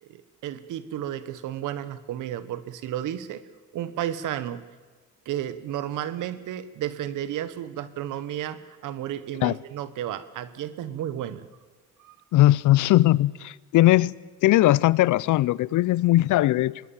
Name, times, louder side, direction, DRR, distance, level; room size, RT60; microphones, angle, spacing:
voice 1, 0.0-3.4 3.7-4.6 5.2-11.5 12.0-12.2, right 11 dB, 85° right, 1.4 m, -32 dB
voice 2, 12.3-14.1 14.4-16.8, left 16 dB, 80° left, 0.6 m, -19 dB
25.0 x 20.0 x 7.3 m
cardioid pair, 90°, 30 cm